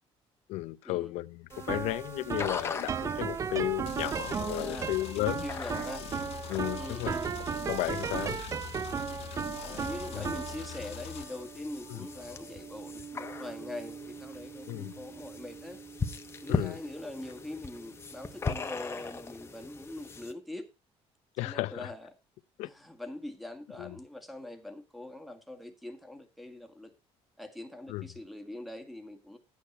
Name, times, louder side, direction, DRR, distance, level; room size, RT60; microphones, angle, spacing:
voice 1, 0.5-5.4 6.5-7.2 7.7-8.4 10.1-10.3 12.0-12.1 14.7-14.9 16.5-16.8 21.4-21.9 22.6-22.7 23.8-24.0 27.9-28.0, left 18 dB, 85° left, 0.6 m, -33 dB
sound 1, 1.5-20.3, left 4 dB, 25° left, 1.1 m, -41 dB
sound 2, 1.5-18.7, right 7 dB, 30° right, 0.4 m, -38 dB
sound 3, 3.9-11.2, left 10 dB, 65° left, 1.3 m, -43 dB
voice 2, 4.5-6.1 6.7-7.3 9.6-15.8 16.4-20.7 21.4-22.1 22.6-26.9 27.4-29.4, left 1 dB, ahead, 1.8 m, -43 dB
10.5 x 8.7 x 4.3 m
cardioid pair, 130°, 11 cm